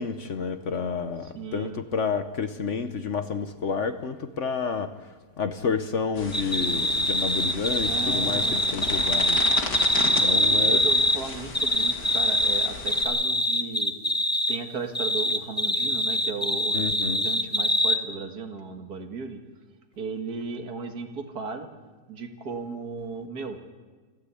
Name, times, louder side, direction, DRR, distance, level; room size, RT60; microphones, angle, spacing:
voice 1, 0.0-5.1 5.4-9.8 10.2-10.8 16.7-17.3, left 5 dB, 50° left, 1.1 m, -30 dB
voice 2, 1.3-1.8 7.8-8.6 10.5-13.9 14.5-19.4 20.0-21.7 22.1-23.6, right 4 dB, 65° right, 2.3 m, -36 dB
sound 1, 6.2-13.0, left 3 dB, 75° left, 2.8 m, -35 dB
sound 2, 6.3-11.2 11.5-14.6 14.9-18.0, left 1 dB, 5° left, 1.1 m, -24 dB
27.5 x 13.5 x 8.4 m
omnidirectional pair, 1.8 m